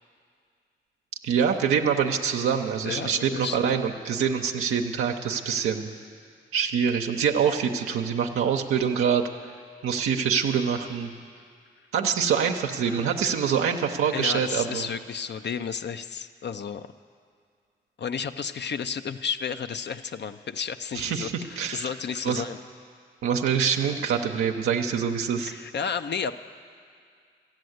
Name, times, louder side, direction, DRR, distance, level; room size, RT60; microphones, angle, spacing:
voice 1, 1.2-5.9 6.5-9.2 9.8-11.1 11.9-14.9 20.9-21.9 22.2-22.4 23.2-25.5, right 7 dB, 90° right, 2 dB, 0.7 m, -25 dB
voice 2, 2.8-3.8 12.8-13.1 14.1-16.9 18.0-22.6 25.4-26.3, left 6 dB, 55° left, 10 dB, 0.6 m, -32 dB
13.5 x 9.0 x 7.9 m, 2.2 s
supercardioid pair, 40°, 21 cm